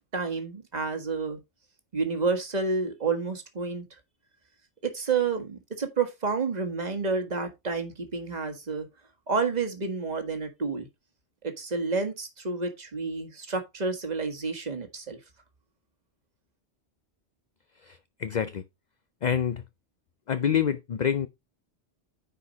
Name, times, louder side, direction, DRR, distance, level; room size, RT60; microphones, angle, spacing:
voice 1, 0.0-1.4 1.9-3.8 4.8-8.9 9.3-10.9 11.4-15.2, right 4 dB, 40° right, 1.6 m, -30 dB
voice 2, 18.2-18.6 19.2-19.6 20.3-21.3, left 8 dB, 50° left, 0.6 m, -26 dB
9.9 x 4.7 x 4.1 m
omnidirectional pair, 1.2 m